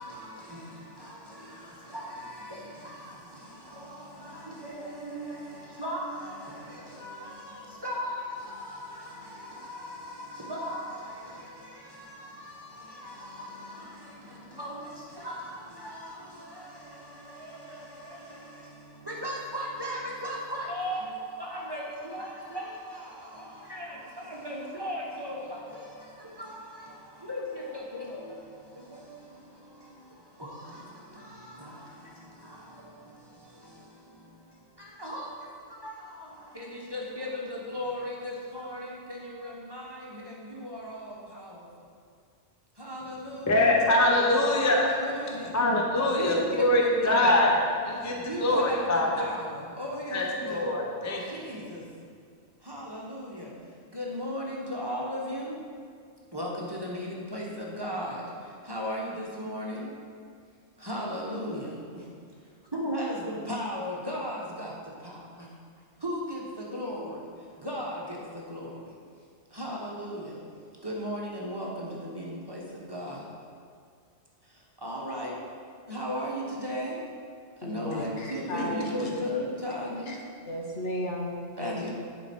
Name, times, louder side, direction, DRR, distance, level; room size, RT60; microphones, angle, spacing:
voice 1, 0.0-41.9 42.8-43.8 44.4-45.5 46.1-47.4 48.0-50.7 51.2-51.8 52.6-55.6 56.3-59.9 60.8-62.1 62.7-65.5 66.0-68.9 69.5-70.4 70.8-73.3 74.4-75.4 75.9-77.0 77.6-80.2 81.6-81.9, equal, 20° right, -4 dB, 1.0 m, -37 dB
voice 2, 43.5-44.9 45.5-47.5 47.8-48.1 48.4-49.3 50.1-51.2, left 1 dB, 20° left, 0 dB, 0.6 m, -23 dB
voice 3, 77.6-79.2 80.1-80.2 80.5-81.9, left 1 dB, 75° left, -1 dB, 1.4 m, -34 dB
10.5 x 4.5 x 4.4 m, 2.2 s
omnidirectional pair, 1.2 m